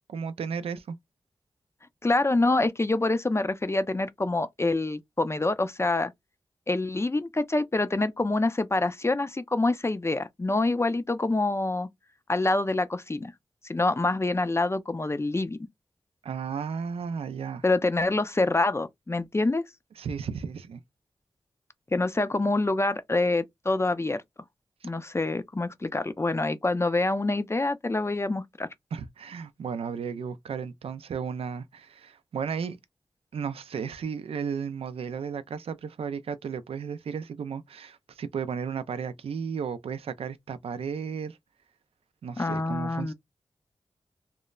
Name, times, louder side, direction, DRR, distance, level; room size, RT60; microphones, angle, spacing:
voice 1, 0.1-1.0 16.2-17.6 20.0-20.8 28.9-32.8 33.3-41.4 42.2-43.1, right 6 dB, 85° right, 0.4 m, -34 dB
voice 2, 2.0-6.1 6.7-11.9 12.3-13.3 13.6-15.6 17.6-19.6 21.9-24.2 24.8-28.7 42.4-43.1, left 2 dB, 30° left, 0.4 m, -26 dB
3.0 x 2.0 x 2.3 m
cardioid pair, 40°, 10 cm